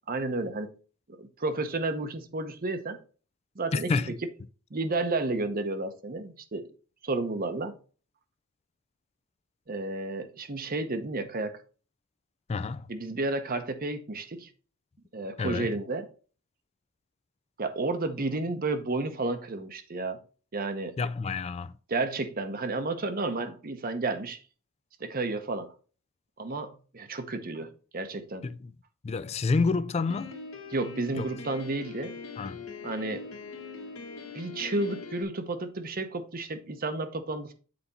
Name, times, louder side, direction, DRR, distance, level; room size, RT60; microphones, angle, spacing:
voice 1, 0.1-0.7 1.2-3.0 3.6-3.9 4.7-6.7 7.0-7.7 9.7-11.6 12.9-14.5 15.1-16.1 17.6-20.2 20.5-21.0 21.9-24.4 25.0-25.7 26.4-28.5 30.7-32.1 32.8-33.3 34.3-37.5, right 2 dB, 45° right, 0.8 m, -31 dB
voice 2, 3.7-4.1 12.5-12.9 15.4-15.7 21.0-21.7 28.4-28.7 29.0-30.4 31.1-31.3 32.4-32.6, left 4 dB, 30° left, 0.3 m, -29 dB
Piano, 30.1-35.2, left 4 dB, 75° left, 1.6 m, -42 dB
7.8 x 4.2 x 4.1 m
head